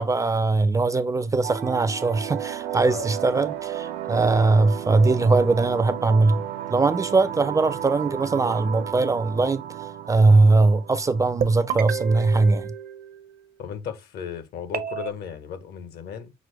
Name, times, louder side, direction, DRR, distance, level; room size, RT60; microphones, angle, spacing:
voice 1, 0.0-6.4 6.7-9.6 10.1-12.7, right 3 dB, 20° right, 0.3 m, -20 dB
sound 1, 1.4-12.4, right 11 dB, 90° right, 0.8 m, -33 dB
sound 2, 11.4-13.5 14.7-15.1, right 8 dB, 60° right, 0.6 m, -31 dB
voice 2, 13.6-16.3, left 8 dB, 70° left, 0.9 m, -35 dB
6.0 x 2.1 x 3.1 m
cardioid pair, 110°, 17 cm